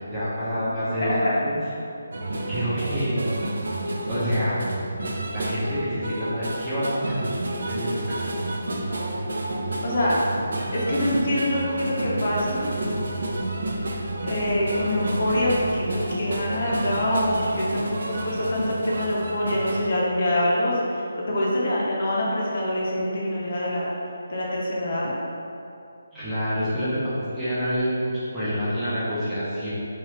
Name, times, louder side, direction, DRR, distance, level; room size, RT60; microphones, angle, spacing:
voice 1, 0.1-1.6 2.5-3.1 4.1-4.6 5.3-8.2 26.1-29.7, equal, 5° right, -15 dB, 0.5 m, -27 dB
voice 2, 0.9-1.3 9.8-10.2 10.7-12.6 14.2-23.9 24.3-25.1, left 1 dB, 45° left, -5 dB, 0.5 m, -25 dB
sound 1, 2.1-19.9, right 1 dB, 65° right, 0.4 m, -30 dB
2.8 x 2.3 x 3.0 m, 2.6 s
hypercardioid pair, 175°, 0 cm